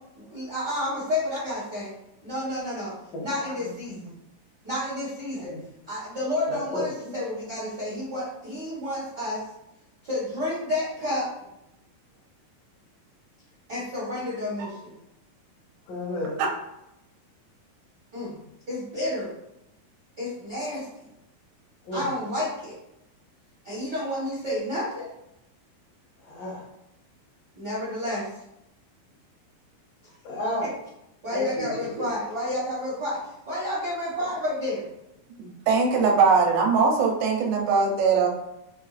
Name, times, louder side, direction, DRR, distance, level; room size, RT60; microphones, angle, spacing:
voice 1, 0.1-1.9 2.2-2.9 3.2-4.0 4.6-5.5 5.9-9.4 10.0-11.3 13.7-14.9 18.1-18.4 18.7-19.3 20.2-20.9 21.9-22.7 23.6-25.1 27.5-28.3 30.0-30.1 31.2-33.2 33.5-34.8, left 1 dB, 55° right, -10 dB, 1.1 m, -30 dB
voice 2, 6.5-7.1 15.9-16.3 21.8-22.1 26.2-26.6 30.2-30.6 31.3-32.0, left 1 dB, 75° left, -6 dB, 3.0 m, -32 dB
voice 3, 35.4-38.3, right 5 dB, 80° right, 0 dB, 2.4 m, -22 dB
6.4 x 2.4 x 2.4 m, 0.85 s
omnidirectional pair, 4.0 m